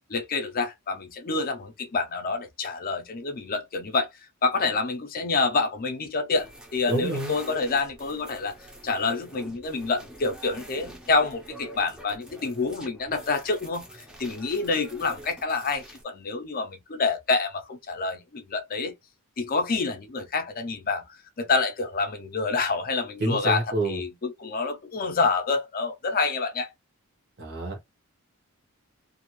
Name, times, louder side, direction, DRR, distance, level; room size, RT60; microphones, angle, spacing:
voice 1, 0.1-4.1 4.4-8.5 8.8-18.9 19.4-26.7, left 4 dB, 40° left, 0.6 m, -27 dB
sound 1, 6.3-16.0, right 1 dB, 5° right, 0.6 m, -46 dB
voice 2, 6.9-7.4 23.2-24.0 27.4-27.8, right 2 dB, 50° right, 1.1 m, -28 dB
2.6 x 2.4 x 2.9 m
head